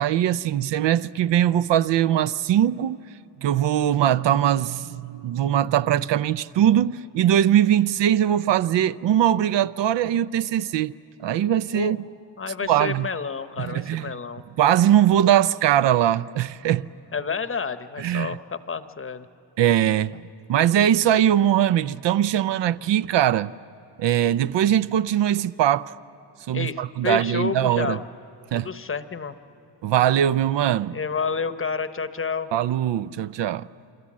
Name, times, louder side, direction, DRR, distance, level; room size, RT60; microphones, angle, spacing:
voice 1, 0.0-3.0 3.4-10.9 11.2-12.0 12.6-13.1 13.6-14.1 14.6-16.9 18.0-18.4 19.6-20.2 20.5-23.5 24.0-25.9 26.5-28.0 28.5-28.7 29.8-31.0 32.5-33.7, right 11 dB, 70° right, 0.6 m, -21 dB
voice 2, 12.4-14.4 17.1-19.3 26.5-28.0 28.5-29.4 30.9-32.5, left 5 dB, 30° left, 0.9 m, -30 dB
29.0 x 24.5 x 7.4 m
cardioid pair, 130°, 45 cm